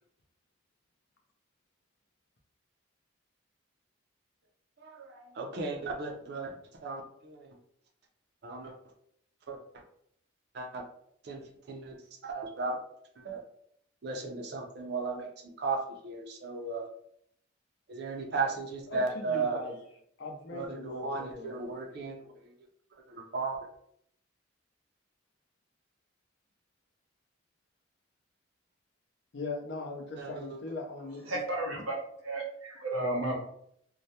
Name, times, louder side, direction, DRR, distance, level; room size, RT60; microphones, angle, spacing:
voice 1, 4.8-6.5 6.8-7.5 8.4-8.7 9.5-9.6 10.5-10.8 11.2-11.4 11.7-12.0 12.2-12.8 13.2-13.4 14.0-15.3 15.6-16.9 17.9-19.6 20.5-22.5 23.1-23.6 30.2-30.6, right 3 dB, 55° right, 2 dB, 0.4 m, -35 dB
voice 2, 18.9-19.8 20.2-21.6 29.3-31.8, left 3 dB, 60° left, 1 dB, 0.5 m, -40 dB
voice 3, 31.3-33.3, right 2 dB, 85° right, -1 dB, 0.7 m, -33 dB
2.2 x 2.0 x 2.7 m, 0.70 s
head